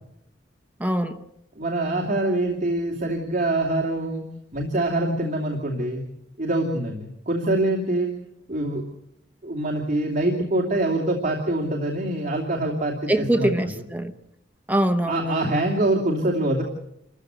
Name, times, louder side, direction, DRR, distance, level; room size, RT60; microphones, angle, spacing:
voice 1, 0.8-1.2 13.1-14.1 14.7-15.5, right 1 dB, 10° right, 0.9 m, -23 dB
voice 2, 1.6-4.2 4.5-6.0 6.4-8.1 8.5-8.8 9.4-13.5 15.0-16.6, right 1 dB, 45° right, 2.7 m, -24 dB
28.5 x 14.5 x 8.1 m
head